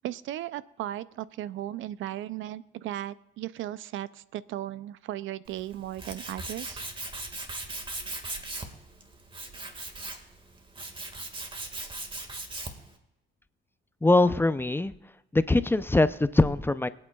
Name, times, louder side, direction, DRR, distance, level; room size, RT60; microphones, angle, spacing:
voice 1, 0.0-6.9, right 13 dB, 80° right, 17 dB, 0.5 m, -36 dB
Tools, 5.5-12.9, right 2 dB, 25° right, 1.8 m, -39 dB
voice 2, 14.0-14.9 15.3-16.9, left 2 dB, 10° left, 13 dB, 0.5 m, -22 dB
24.5 x 8.9 x 2.3 m, 0.91 s
cardioid pair, 90°, 20 cm